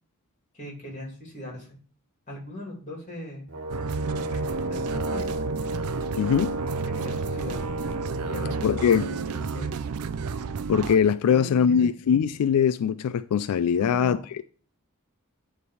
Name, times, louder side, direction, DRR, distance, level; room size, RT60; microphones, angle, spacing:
voice 1, 0.5-1.7 2.3-3.5 4.3-5.4 6.9-7.6 8.2-9.7 11.3-11.9 13.7-14.3, left 1 dB, 35° left, 2.6 m, -39 dB
Brass instrument, 3.5-9.0, right 1 dB, 55° right, 1.5 m, -33 dB
sound 1, 3.7-11.0, right 5 dB, 80° right, 0.4 m, -32 dB
voice 2, 6.2-6.5 8.6-9.1 10.7-14.5, left 7 dB, 90° left, 0.3 m, -22 dB
9.4 x 3.4 x 4.8 m
head